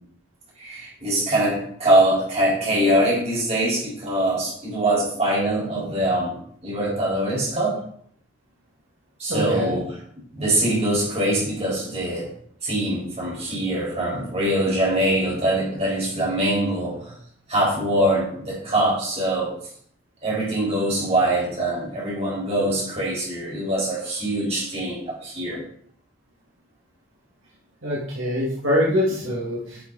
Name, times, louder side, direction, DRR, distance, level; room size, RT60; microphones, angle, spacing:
voice 1, 0.6-6.3 6.6-7.8 9.2-10.0 10.3-12.3 12.6-17.1 17.5-19.5 20.2-25.6, right 1 dB, 30° right, -6 dB, 4.3 m, -23 dB
voice 2, 9.3-9.8 27.8-29.8, left 1 dB, 65° right, -5 dB, 2.1 m, -24 dB
11.0 x 5.8 x 4.1 m, 0.62 s
head